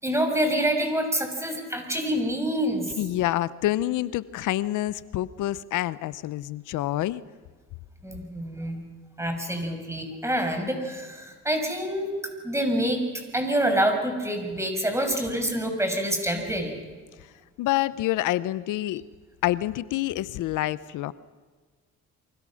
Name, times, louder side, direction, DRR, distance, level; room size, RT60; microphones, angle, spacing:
voice 1, 0.0-2.9 8.0-8.8 9.2-12.1 12.4-13.0 13.3-16.8, right 1 dB, 10° right, 4 dB, 6.2 m, -26 dB
voice 2, 3.0-7.2 17.6-19.0 19.4-21.1, left 15 dB, 90° left, 17 dB, 0.7 m, -27 dB
29.5 x 24.5 x 6.4 m, 1.4 s
cardioid pair, 90°, 30 cm